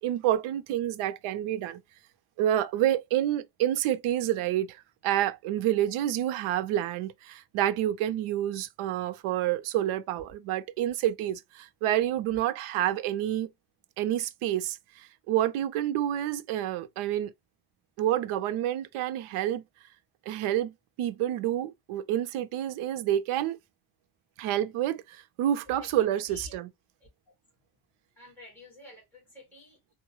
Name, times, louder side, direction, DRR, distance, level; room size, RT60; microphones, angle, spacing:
voice 1, 0.0-1.8 2.4-4.8 5.0-13.5 14.0-17.3 18.0-19.6 20.3-20.7 21.0-23.6 24.4-26.7, right 12 dB, 85° right, 0.6 m, -28 dB
voice 2, 25.7-26.6 27.3-27.4 28.2-29.9, left 2 dB, 5° left, 2.0 m, -50 dB
3.8 x 2.2 x 2.9 m
cardioid pair, 165°, 48 cm